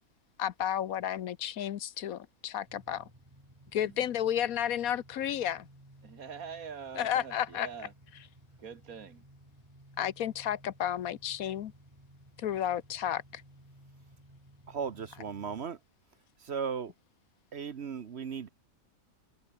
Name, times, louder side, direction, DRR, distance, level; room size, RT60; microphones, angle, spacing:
voice 1, 0.4-3.1 3.7-5.7 6.9-7.7 10.0-11.7 12.4-13.4, left 10 dB, 70° left, 1.2 m, -32 dB
sound 1, 2.7-15.7, right 1 dB, 20° right, 6.0 m, -57 dB
voice 2, 6.0-7.9 8.6-9.2, right 6 dB, 65° right, 1.9 m, -44 dB
voice 3, 14.7-15.8 16.4-16.9 17.5-18.5, right 6 dB, 50° right, 1.1 m, -36 dB
omnidirectional pair, 1.6 m